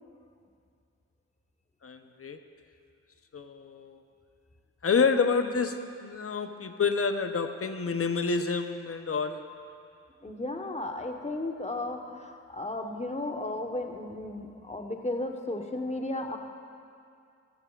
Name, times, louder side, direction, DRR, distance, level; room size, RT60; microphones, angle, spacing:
voice 1, 1.8-2.4 3.3-4.0 4.8-9.4, left 5 dB, 45° left, 8 dB, 0.8 m, -28 dB
voice 2, 10.2-16.4, left 2 dB, 20° left, 3 dB, 1.2 m, -34 dB
14.0 x 13.5 x 2.5 m, 2.3 s
cardioid pair, 45°, 31 cm